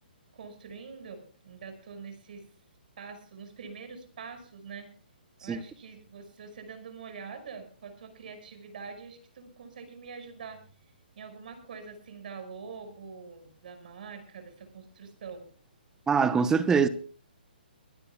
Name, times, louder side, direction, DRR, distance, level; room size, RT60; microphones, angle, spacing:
voice 1, 0.3-2.5 3.0-4.9 5.4-15.4, right 5 dB, 60° right, 5.7 m, -45 dB
voice 2, 16.1-16.9, right 6 dB, 10° right, 0.9 m, -23 dB
23.5 x 16.5 x 2.3 m
hypercardioid pair, 145°, 5 cm